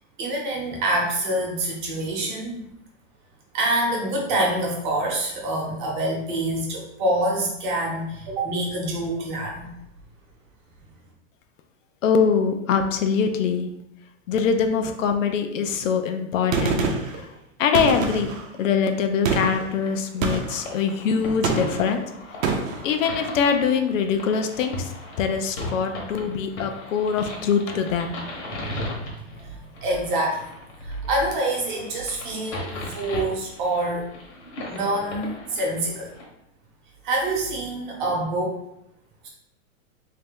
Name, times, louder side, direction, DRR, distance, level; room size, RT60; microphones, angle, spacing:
voice 1, 0.2-2.6 3.5-9.7 28.5-30.5 30.8-34.1 34.7-36.1 37.0-38.6, right 1 dB, 40° right, -1 dB, 1.0 m, -26 dB
voice 2, 12.0-13.7 14.3-16.8 17.6-18.3 18.6-22.0 22.8-24.9 25.2-28.1, left 6 dB, 75° left, 6 dB, 0.6 m, -23 dB
Gunshot gunfire, 16.5-17.2 17.7-18.5 19.2-19.7 20.2-20.7 21.4-21.9 22.4-22.8, right 4 dB, 80° right, 0.7 m, -25 dB
sound 1, 19.6-36.2, left 2 dB, 55° left, 1.1 m, -38 dB
3.2 x 2.8 x 3.6 m, 0.80 s
supercardioid pair, 170°, 39 cm